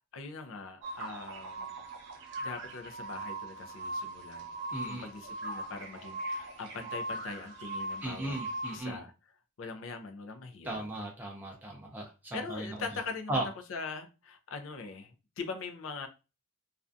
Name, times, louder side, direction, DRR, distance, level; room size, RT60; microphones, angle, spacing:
voice 1, 0.1-1.8 2.4-4.6 4.8-8.4 8.7-9.1 9.6-10.9 12.3-16.1, left 4 dB, 75° left, 0.4 m, -42 dB
sound 1, 0.8-8.8, right 2 dB, 65° right, 0.7 m, -40 dB
voice 2, 4.7-5.1 8.0-9.0 10.6-12.7 13.3-13.5, right 1 dB, 10° right, 0.4 m, -36 dB
2.4 x 2.2 x 2.5 m
head